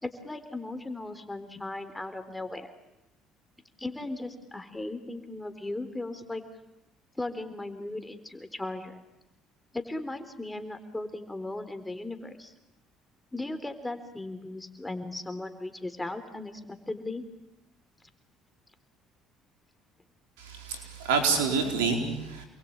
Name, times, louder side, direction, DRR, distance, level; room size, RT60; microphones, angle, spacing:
voice 1, 0.0-2.7 3.8-6.4 7.2-9.0 9.7-12.5 13.3-17.2, left 2 dB, 15° left, 8 dB, 3.7 m, -37 dB
voice 2, 20.4-22.5, right 5 dB, 90° right, 4 dB, 4.7 m, -27 dB
28.5 x 22.0 x 8.9 m, 0.90 s
supercardioid pair, 70°, 0 cm